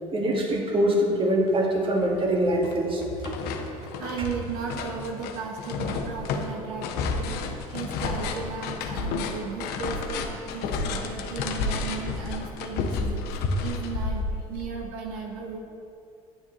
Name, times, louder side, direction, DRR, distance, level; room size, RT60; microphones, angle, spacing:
voice 1, 0.1-3.3, right 1 dB, 30° right, 0 dB, 1.9 m, -24 dB
sound 1, 1.6-1.7 2.0-2.8 3.0-14.7, left 4 dB, 60° left, 1.0 m, -31 dB
voice 2, 4.0-15.6, right 5 dB, 70° right, 0 dB, 1.1 m, -35 dB
10.5 x 9.6 x 3.0 m, 2.6 s
hypercardioid pair, 65°, 19 cm